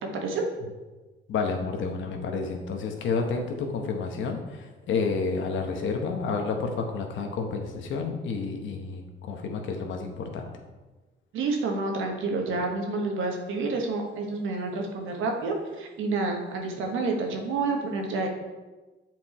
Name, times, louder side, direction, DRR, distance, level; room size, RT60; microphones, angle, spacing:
voice 1, 0.0-0.4 11.3-18.3, right 3 dB, 80° right, 2 dB, 1.4 m, -29 dB
voice 2, 1.3-10.5, left 4 dB, 75° left, 3 dB, 1.1 m, -30 dB
7.6 x 4.6 x 4.3 m, 1.2 s
cardioid pair, 90°, 20 cm